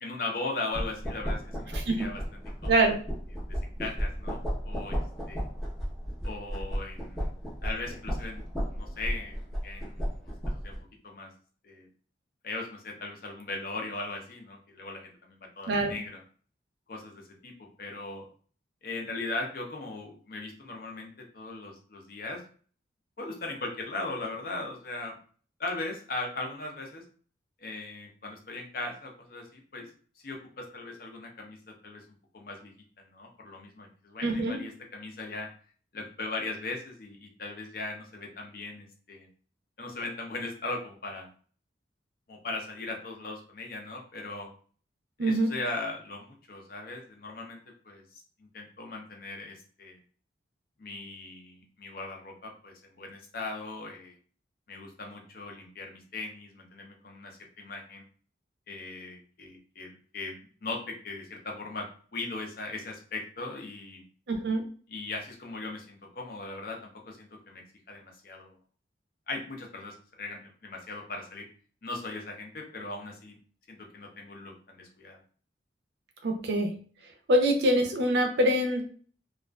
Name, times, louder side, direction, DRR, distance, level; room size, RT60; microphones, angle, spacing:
voice 1, 0.0-1.7 2.0-2.2 2.5-2.9 3.5-4.4 4.7-5.0 5.3-5.4 6.2-7.4 7.6-8.4 8.7-10.3 10.6-10.8 11.0-11.3 11.6-11.9 12.4-16.2 16.9-18.3 18.8-22.4 23.2-25.2 25.6-27.0 27.6-29.9 30.2-32.0 32.3-35.5 35.9-39.3 39.8-41.3 42.3-44.5 45.2-48.0 48.4-50.0 50.8-54.2 54.7-58.0 58.7-64.0 64.9-67.6 67.9-68.6 69.3-71.5 71.8-73.4 73.7-75.2, left 2 dB, 50° left, 1 dB, 0.6 m, -39 dB
sound 1, 0.7-10.8, equal, ahead, 0.7 m, -34 dB
voice 2, 2.7-3.0 15.7-15.9 34.2-34.6 45.2-45.5 64.3-64.6 76.2-76.7 77.3-78.8, right 1 dB, 65° right, 3 dB, 0.5 m, -24 dB
2.4 x 2.3 x 2.2 m, 0.43 s
head